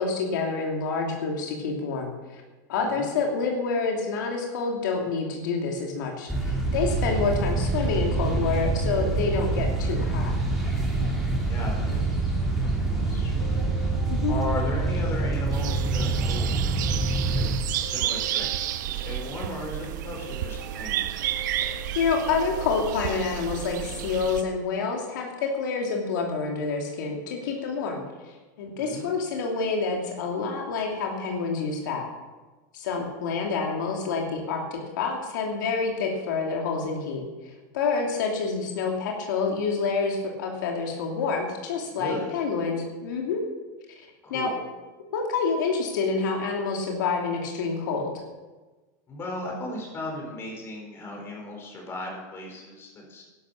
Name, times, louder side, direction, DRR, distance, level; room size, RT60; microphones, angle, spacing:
voice 1, 0.0-2.4 2.7-10.3 14.1-14.3 21.6-28.0 28.6-32.1 32.7-37.2 37.7-43.4 44.3-44.5 45.1-48.1, left 4 dB, 80° left, 1 dB, 2.8 m, -28 dB
voice 2, 2.7-3.1 11.4-16.4 16.9-21.3 28.8-29.1 41.9-42.3 44.2-44.6 49.1-53.2, left 2 dB, 25° left, 0 dB, 4.7 m, -37 dB
sound 1, 6.3-17.6, right 3 dB, ahead, 3.5 m, -26 dB
sound 2, 13.4-15.3 15.6-17.5 17.8-19.7 20.0-21.9 22.2-24.1, left 5 dB, 35° right, 4.9 m, -45 dB
sound 3, 15.5-24.4, right 13 dB, 75° right, 0.8 m, -31 dB
12.0 x 11.5 x 7.1 m, 1.2 s
supercardioid pair, 145°, 10 cm